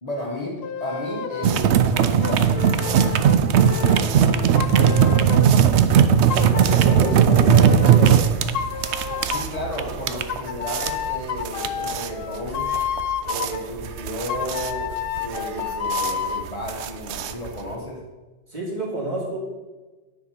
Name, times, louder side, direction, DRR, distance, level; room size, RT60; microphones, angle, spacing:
voice 1, 0.0-3.1 3.6-5.7 9.3-12.7 13.2-18.0, left 1 dB, 35° left, -2 dB, 1.2 m, -33 dB
sound 1, 0.6-1.6 2.2-5.6 6.3-8.2 8.5-9.6 10.3-13.6 14.3-16.5, left 8 dB, 65° left, 0.7 m, -30 dB
sound 2, 1.4-17.7, right 8 dB, 70° right, 0.9 m, -19 dB
voice 2, 6.3-8.2 18.5-19.4, right 1 dB, 35° right, -6 dB, 2.8 m, -29 dB
9.6 x 4.7 x 5.8 m, 1.2 s
omnidirectional pair, 1.2 m